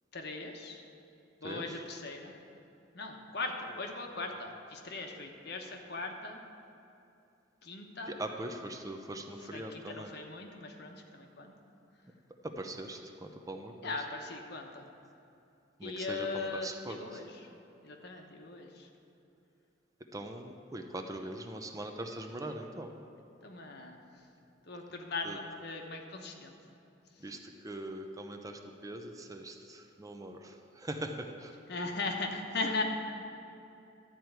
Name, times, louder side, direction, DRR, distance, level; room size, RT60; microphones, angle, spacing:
voice 1, 0.1-0.8 1.4-2.3 2.9-6.4 7.6-8.1 9.5-11.5 13.8-14.9 15.8-17.5 17.8-18.9 23.4-24.0 24.7-26.5 31.7-32.8, left 3 dB, 60° left, 3 dB, 1.0 m, -39 dB
voice 2, 1.4-1.8 8.1-10.1 12.4-13.9 15.8-17.2 20.1-23.0 25.2-25.4 27.2-31.5, right 1 dB, 20° right, 4 dB, 0.6 m, -41 dB
12.0 x 4.6 x 8.0 m, 2.7 s
head